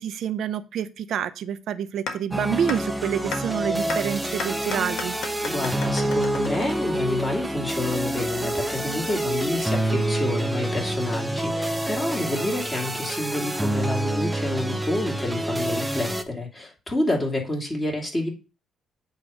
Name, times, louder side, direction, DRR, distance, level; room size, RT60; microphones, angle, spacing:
voice 1, 0.0-5.1, right 8 dB, 70° right, 12 dB, 0.7 m, -28 dB
sound 1, 2.1-2.2 2.7-2.8 3.3-3.4 3.9-4.0 4.4-7.3, left 5 dB, 75° left, 1.4 m, -32 dB
sound 2, 2.3-16.2, right 1 dB, 10° right, 0.8 m, -27 dB
voice 2, 5.4-18.3, left 1 dB, 20° left, -1 dB, 2.5 m, -28 dB
8.3 x 3.1 x 6.3 m, 0.32 s
cardioid pair, 90°, 0 cm